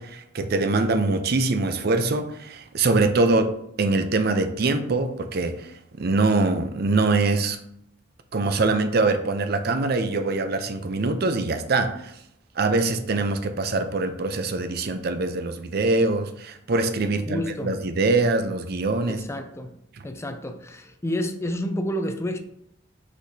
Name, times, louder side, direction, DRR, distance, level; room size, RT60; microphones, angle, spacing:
voice 1, 0.0-3.5 3.8-7.6 8.3-12.1 12.6-19.2, right 3 dB, 55° right, 8 dB, 0.5 m, -23 dB
voice 2, 17.3-17.8 19.1-19.8 20.0-22.4, left 1 dB, 15° left, 7 dB, 0.4 m, -29 dB
4.7 x 4.2 x 2.7 m, 0.74 s
head